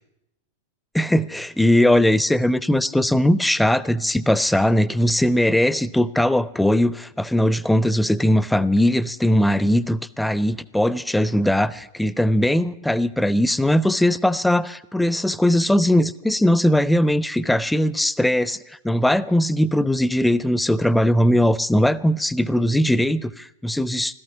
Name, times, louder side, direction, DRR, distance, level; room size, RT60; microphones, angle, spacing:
voice 1, 0.9-24.1, left 1 dB, 5° left, 18 dB, 0.5 m, -20 dB
16.0 x 13.5 x 6.0 m, 0.88 s
figure-of-eight pair, 90°, 0 cm